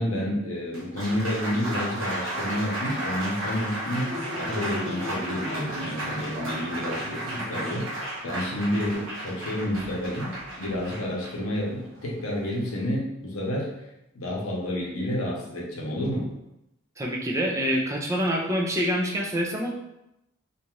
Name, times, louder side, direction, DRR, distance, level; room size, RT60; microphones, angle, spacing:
voice 1, 0.0-8.0 8.2-10.3 10.6-13.7 14.1-16.3, left 1 dB, 80° left, -3 dB, 0.8 m, -29 dB
Applause, 0.6-12.8, right 1 dB, 60° right, 0.6 m, -33 dB
voice 2, 17.0-19.7, equal, 15° right, -1 dB, 0.4 m, -26 dB
2.7 x 2.3 x 3.0 m, 0.87 s
head